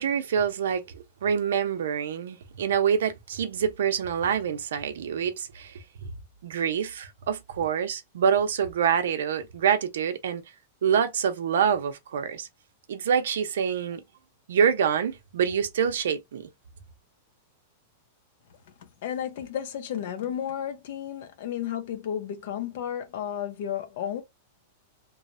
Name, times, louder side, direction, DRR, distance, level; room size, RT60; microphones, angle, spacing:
voice 1, 0.0-5.8 6.4-10.4 10.8-12.5 12.9-14.0 14.5-16.5, right 7 dB, 85° right, 0.6 m, -26 dB
voice 2, 18.8-24.2, left 9 dB, 60° left, 0.7 m, -33 dB
3.1 x 2.1 x 2.5 m
supercardioid pair, 155°, 0 cm